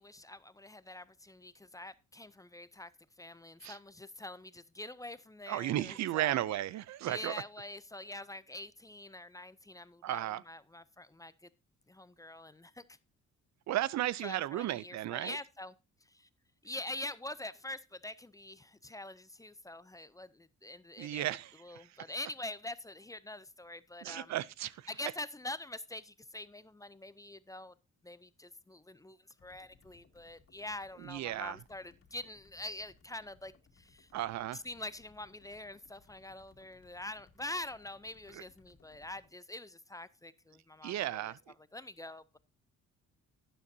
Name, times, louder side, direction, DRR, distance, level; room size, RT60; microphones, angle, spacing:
voice 1, 0.0-2.9 3.2-6.4 7.1-11.5 11.9-13.0 14.2-15.7 16.0-16.3 16.6-24.3 24.9-27.7 28.0-34.1 34.5-41.3 41.7-42.4, left 2 dB, 10° left, 0.5 m, -45 dB
voice 2, 5.5-7.4 10.0-10.4 13.7-15.4 21.0-22.0 24.0-24.9 31.0-31.6 34.1-34.6 38.3-38.4 40.8-41.4, right 13 dB, 65° right, 0.5 m, -35 dB
sound 1, 29.4-39.3, left 4 dB, 50° left, 2.2 m, -65 dB
12.0 x 10.0 x 2.7 m
cardioid pair, 90°, 30 cm